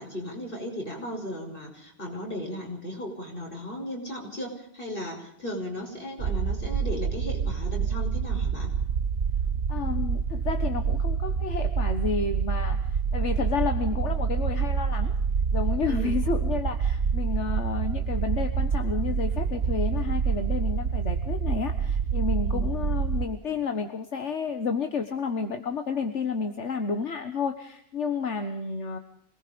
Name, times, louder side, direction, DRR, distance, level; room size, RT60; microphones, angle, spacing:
voice 1, 0.0-8.7 15.9-16.1 22.4-22.7, equal, 50° left, 1 dB, 6.1 m, -36 dB
sound 1, 6.2-23.3, right 6 dB, 65° right, 1.2 m, -27 dB
voice 2, 9.7-15.2 15.5-29.0, left 5 dB, 80° left, 7 dB, 1.7 m, -31 dB
26.5 x 19.5 x 5.2 m, 0.67 s
omnidirectional pair, 1.2 m